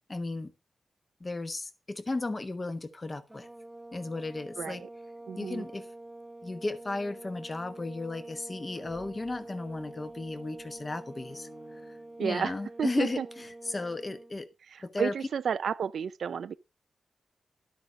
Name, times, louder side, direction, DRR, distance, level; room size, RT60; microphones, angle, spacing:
voice 1, 0.1-0.5 1.2-3.5 3.9-4.8 5.4-5.9 6.4-14.5 14.8-15.2, left 2 dB, 20° left, 1.1 m, -35 dB
sound 1, 3.3-14.3, right 2 dB, 10° right, 0.6 m, -46 dB
voice 2, 4.6-4.9 5.3-5.6 12.2-12.5 12.8-13.3 14.7-16.5, right 7 dB, 70° right, 0.5 m, -32 dB
sound 2, 8.5-12.7, left 2 dB, 90° left, 6.5 m, -57 dB
12.0 x 9.1 x 3.6 m
wide cardioid pair, 170°, 0 cm